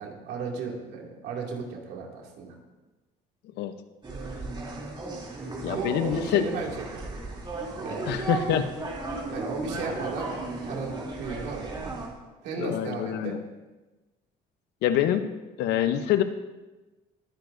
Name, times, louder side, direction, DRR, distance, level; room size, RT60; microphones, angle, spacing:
voice 1, 0.0-2.6 5.6-7.1 7.8-8.2 9.3-11.8 12.4-13.4, right 4 dB, 90° right, -1 dB, 2.5 m, -35 dB
sound 1, 4.0-12.1, right 3 dB, 30° right, 3.0 m, -35 dB
voice 2, 5.6-6.4 8.1-8.7 12.6-13.4 14.8-15.3 15.6-16.2, left 11 dB, 85° left, 10 dB, 0.9 m, -25 dB
21.5 x 9.3 x 2.7 m, 1.1 s
cardioid pair, 110°, 17 cm